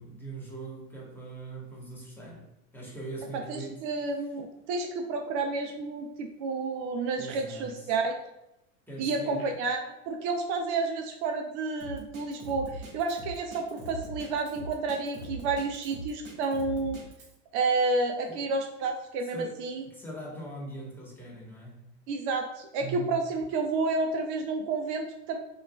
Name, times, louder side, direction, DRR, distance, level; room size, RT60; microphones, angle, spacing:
voice 1, 0.0-2.4 2.7-3.8 7.2-7.7 8.9-9.5 18.3-18.4 19.3-19.6 19.9-21.8 22.8-23.2, right 2 dB, 5° left, -4 dB, 1.2 m, -41 dB
voice 2, 3.3-8.1 9.0-9.8 10.1-17.0 17.5-19.8 22.1-25.4, right 3 dB, 60° right, 4 dB, 0.5 m, -30 dB
Drum kit, 11.8-17.3, right 1 dB, 85° right, 1.2 m, -41 dB
5.2 x 2.4 x 2.3 m, 0.88 s
hypercardioid pair, 100°, 40 cm